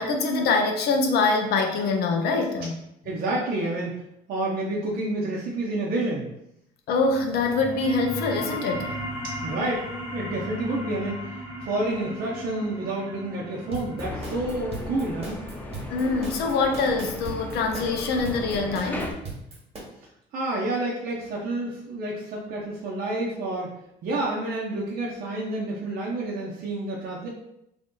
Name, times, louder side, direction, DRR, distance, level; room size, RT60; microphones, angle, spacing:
voice 1, 0.0-2.7 6.9-9.0 15.9-19.1, left 3 dB, 75° left, 3 dB, 0.6 m, -24 dB
voice 2, 3.0-4.0 4.3-6.3 9.4-15.4 20.3-23.7 24.0-27.3, right 2 dB, 60° right, -4 dB, 0.8 m, -29 dB
sound 1, 7.5-18.5, equal, 20° right, 1.3 m, -38 dB
sound 2, 13.7-19.8, right 3 dB, 35° right, 1.2 m, -38 dB
sound 3, 14.0-19.1, left 1 dB, 10° left, 0.5 m, -36 dB
3.4 x 2.6 x 3.8 m, 0.80 s
cardioid pair, 110°, 17 cm